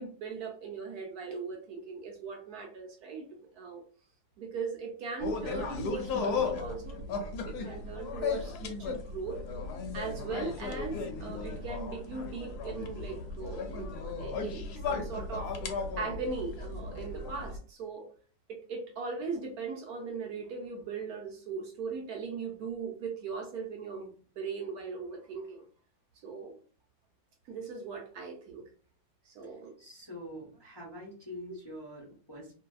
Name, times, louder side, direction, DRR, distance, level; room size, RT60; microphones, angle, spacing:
voice 1, 0.0-3.8 4.4-7.0 7.4-9.4 9.9-15.5 16.0-18.1 18.5-25.6 26.1-26.6 27.4-28.6 29.2-29.7, right 4 dB, 70° right, 1 dB, 1.0 m, -39 dB
sound 1, 5.2-17.6, left 4 dB, 70° left, 1.0 m, -36 dB
voice 2, 29.8-32.6, equal, 30° left, -6 dB, 0.5 m, -45 dB
2.6 x 2.6 x 2.2 m, 0.41 s
omnidirectional pair, 1.9 m